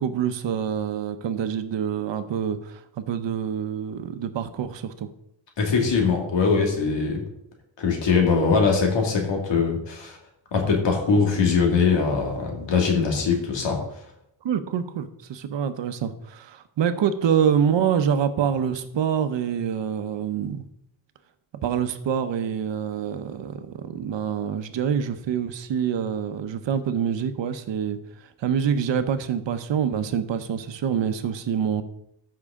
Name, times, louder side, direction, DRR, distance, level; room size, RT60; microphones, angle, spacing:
voice 1, 0.0-5.1 14.4-20.7 21.6-31.8, right 8 dB, 85° right, 10 dB, 0.9 m, -26 dB
voice 2, 5.6-7.2 7.8-10.2 10.5-13.8, left 5 dB, 80° left, 1 dB, 2.3 m, -22 dB
14.0 x 5.6 x 3.7 m, 0.79 s
wide cardioid pair, 120°, 43 cm